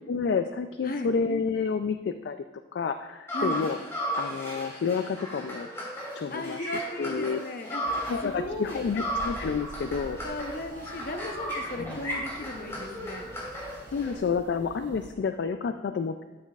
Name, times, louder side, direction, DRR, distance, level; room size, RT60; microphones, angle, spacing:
voice 1, 0.1-2.4 2.7-3.8 4.2-5.7 6.1-7.4 8.1-10.2 11.8-12.0 13.9-16.2, left 5 dB, 65° left, 9 dB, 0.3 m, -29 dB
sound 1, 3.3-8.3 8.6-14.2, equal, 15° left, 2.8 m, -35 dB
voice 2, 6.3-8.9 10.2-13.3, left 1 dB, 50° left, 5 dB, 0.7 m, -36 dB
sound 2, 7.8-15.1, right 1 dB, 70° right, 0.8 m, -46 dB
13.0 x 7.3 x 2.4 m, 1.2 s
head